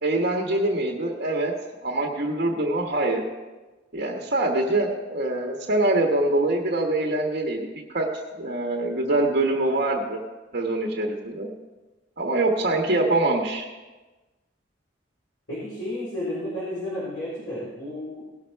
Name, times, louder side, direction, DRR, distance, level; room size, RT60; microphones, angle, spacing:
voice 1, 0.0-1.5 1.8-3.2 3.9-8.1 8.4-10.2 10.5-11.5 12.2-13.7, right 2 dB, 55° right, -1 dB, 1.3 m, -24 dB
voice 2, 15.5-18.2, left 1 dB, 65° left, -9 dB, 4.5 m, -32 dB
18.0 x 6.5 x 4.6 m, 1.2 s
head